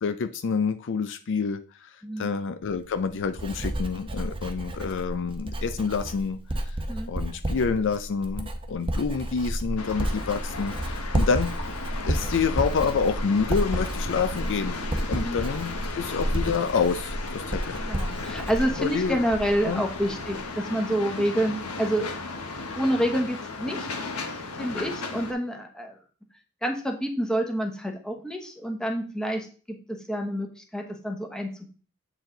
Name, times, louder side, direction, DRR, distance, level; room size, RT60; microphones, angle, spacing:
voice 1, 0.0-1.9 2.2-6.4 7.1-11.6 12.1-14.8 15.1-17.8 18.8-19.2 19.6-19.8, left 5 dB, 55° left, 11 dB, 0.4 m, -28 dB
Writing, 2.6-19.7 20.0-20.4, right 1 dB, 25° right, 0.8 m, -31 dB
sound 1, 9.8-25.3, left 3 dB, 90° left, 1.3 m, -36 dB
voice 2, 17.8-22.1 22.7-23.9 24.6-25.9 26.6-31.7, right 1 dB, 5° left, 2 dB, 1.1 m, -28 dB
7.8 x 4.7 x 3.8 m, 0.39 s
head